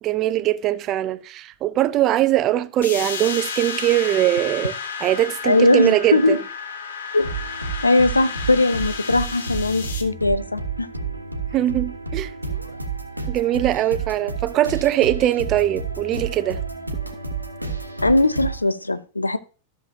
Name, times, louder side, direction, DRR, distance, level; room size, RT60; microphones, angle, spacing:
voice 1, 0.0-6.4 11.5-12.3 13.3-16.6, right 13 dB, 35° right, 0.5 m, -21 dB
sound 1, 2.8-10.0, left 6 dB, 65° left, 1.1 m, -32 dB
voice 2, 5.4-6.4 7.1-7.3 7.8-10.9 18.0-19.4, left 2 dB, 80° left, 0.5 m, -19 dB
sound 2, 7.2-18.6, right 4 dB, 90° right, 1.3 m, -31 dB
13.5 x 6.6 x 2.7 m
figure-of-eight pair, 90°, 0 cm